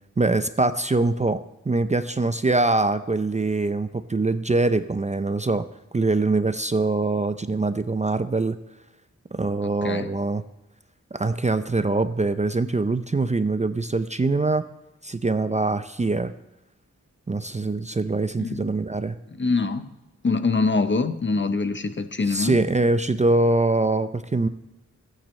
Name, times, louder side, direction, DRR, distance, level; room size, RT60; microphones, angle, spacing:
voice 1, 0.2-5.7 5.9-8.6 9.3-10.4 11.1-14.6 15.0-16.3 17.3-19.2 22.3-24.5, right 2 dB, 25° right, 11 dB, 0.5 m, -23 dB
voice 2, 19.3-19.9 20.2-22.6, left 3 dB, 40° left, 10 dB, 0.8 m, -24 dB
20.0 x 9.0 x 3.2 m, 0.97 s
wide cardioid pair, 90°, 30 cm